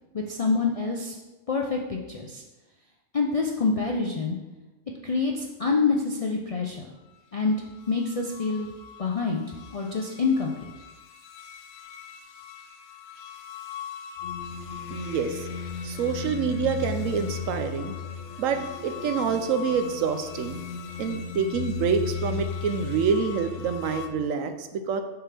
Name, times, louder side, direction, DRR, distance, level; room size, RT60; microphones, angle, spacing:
voice 1, 0.1-1.2 1.5-2.4 3.1-4.4 5.0-6.9 7.3-7.6 7.9-8.7 9.0-9.4 9.7-10.7, left 4 dB, 55° left, -1 dB, 0.4 m, -26 dB
sound 1, 7.9-24.1, left 7 dB, 75° left, 0.9 m, -36 dB
voice 2, 14.9-15.5 15.8-17.9 18.4-20.6 21.0-25.0, right 6 dB, 85° right, 8 dB, 1.0 m, -27 dB
6.9 x 5.9 x 3.3 m, 1.1 s
omnidirectional pair, 1.3 m